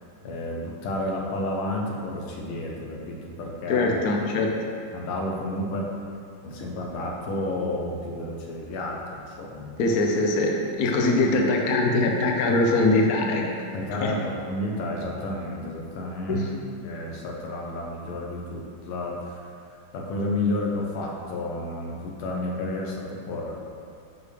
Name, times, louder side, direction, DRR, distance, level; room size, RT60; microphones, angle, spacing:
voice 1, 0.2-3.9 4.9-5.9 6.4-9.8 13.7-16.5 16.8-19.5 19.9-23.6, left 1 dB, 80° left, -1 dB, 1.8 m, -31 dB
voice 2, 3.7-4.5 9.8-10.5 10.8-13.4 14.0-14.1 16.3-16.5, left 2 dB, 60° left, 1 dB, 1.0 m, -22 dB
11.0 x 5.0 x 3.4 m, 2.3 s
omnidirectional pair, 2.3 m